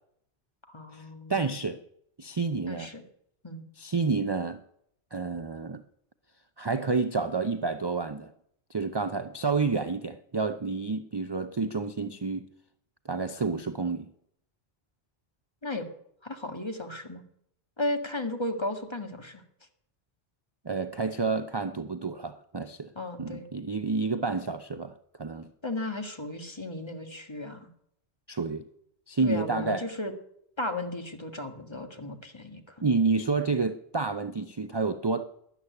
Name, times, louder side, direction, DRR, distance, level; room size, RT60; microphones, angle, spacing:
voice 1, 0.7-1.3 2.7-3.0 3.4-3.6 15.6-15.9 16.2-17.2 17.8-19.4 22.9-23.4 25.6-27.7 29.2-30.1 30.6-32.8, left 2 dB, 25° left, 5 dB, 1.7 m, -35 dB
voice 2, 1.3-1.8 2.2-2.9 3.8-4.6 5.1-5.8 6.6-8.3 8.7-12.5 13.0-14.1 20.6-22.9 23.2-24.9 25.2-25.5 28.3-28.7 29.1-29.9 32.8-35.2, right 4 dB, 30° right, 10 dB, 0.5 m, -29 dB
13.0 x 11.5 x 9.5 m, 0.73 s
omnidirectional pair, 1.1 m